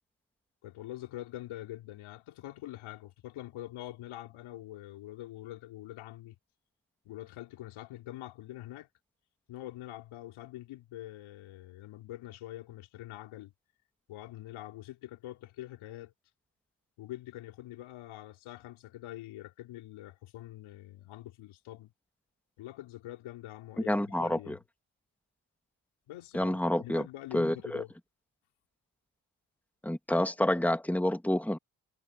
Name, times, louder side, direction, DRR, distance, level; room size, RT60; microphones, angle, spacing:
voice 1, 0.6-6.3 7.0-8.9 9.5-13.5 14.1-16.1 17.0-21.9 22.6-24.6 26.1-27.9, left 14 dB, 85° left, 4.9 m, -45 dB
voice 2, 23.9-24.6 26.3-27.1 27.3-27.8 29.8-31.6, left 1 dB, 5° left, 2.5 m, -28 dB
supercardioid pair, 45°, 47 cm